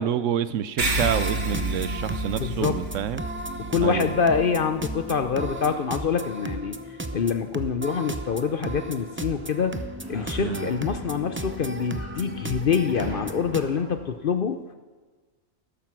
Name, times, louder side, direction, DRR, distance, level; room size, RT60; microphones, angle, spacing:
voice 1, 0.0-3.2 3.8-4.1 10.4-10.7, right 9 dB, 70° right, 15 dB, 0.9 m, -28 dB
sound 1, 0.8-13.6, right 1 dB, 20° right, 0.3 m, -35 dB
sound 2, 0.8-5.6, right 2 dB, 50° right, 2.1 m, -31 dB
voice 2, 2.3-2.8 3.7-6.7 7.1-9.8 10.1-14.6, left 6 dB, 50° left, 9 dB, 0.7 m, -25 dB
sound 3, 9.1-14.1, equal, 20° left, 3.8 m, -44 dB
13.5 x 12.0 x 6.1 m, 1.4 s
omnidirectional pair, 1.4 m